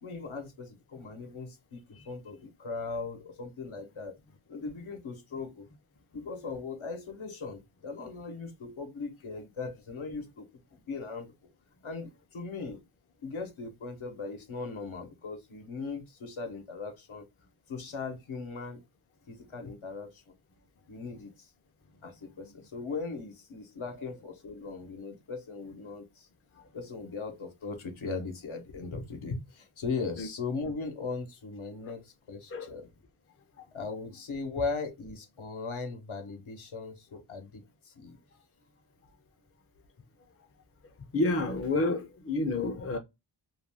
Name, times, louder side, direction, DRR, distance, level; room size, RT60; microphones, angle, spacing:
voice 1, 0.0-4.1 4.5-5.7 6.1-11.3 11.8-12.8 13.2-17.3 17.7-18.8 19.3-20.3 20.9-21.5 22.0-26.3 26.7-32.9 33.7-38.2, left 4 dB, 80° left, 0.8 m, -39 dB
voice 2, 41.1-43.0, left 2 dB, 30° left, 0.5 m, -29 dB
2.4 x 2.2 x 3.2 m
wide cardioid pair, 90°, 48 cm